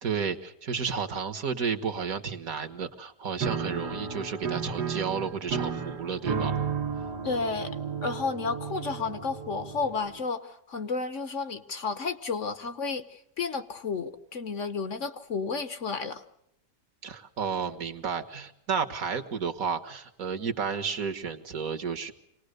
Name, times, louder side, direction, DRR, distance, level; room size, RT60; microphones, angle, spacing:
voice 1, 0.0-6.5 17.0-22.1, right 6 dB, 60° right, 1.8 m, -32 dB
Piano, 3.4-10.2, right 6 dB, 75° right, 2.1 m, -33 dB
voice 2, 7.2-16.2, left 4 dB, 50° left, 1.3 m, -32 dB
26.5 x 19.5 x 6.6 m
omnidirectional pair, 1.8 m